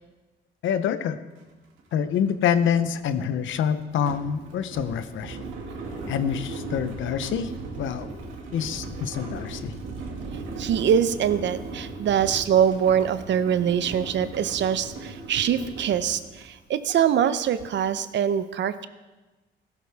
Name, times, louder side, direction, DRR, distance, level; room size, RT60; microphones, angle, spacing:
voice 1, 0.6-1.2 1.9-5.5 6.1-7.5 7.8-8.1 8.5-9.7, left 8 dB, 80° left, 12 dB, 0.8 m, -26 dB
sound 1, 1.4-1.5 1.8-16.6, right 3 dB, 85° right, 2.1 m, -38 dB
voice 2, 10.6-18.9, right 9 dB, 65° right, 13 dB, 0.7 m, -23 dB
15.5 x 12.5 x 3.5 m, 1.2 s
cardioid pair, 90°, 20 cm